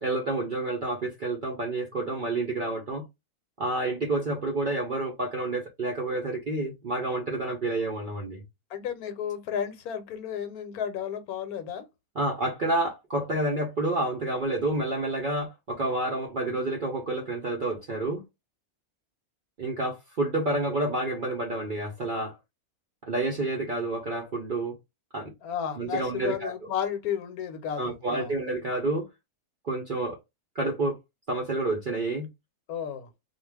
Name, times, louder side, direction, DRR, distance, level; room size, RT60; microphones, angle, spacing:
voice 1, 0.0-3.0 3.6-8.4 12.2-18.2 19.6-22.4 23.0-24.7 25.1-25.3 25.8-26.5 27.8-29.1 29.6-30.2 30.5-31.0 31.3-32.3, right 2 dB, 60° right, 0.5 m, -29 dB
voice 2, 8.7-11.9 25.4-28.4 32.7-33.1, left 8 dB, 80° left, 1.1 m, -33 dB
2.3 x 2.3 x 3.3 m
omnidirectional pair, 1.6 m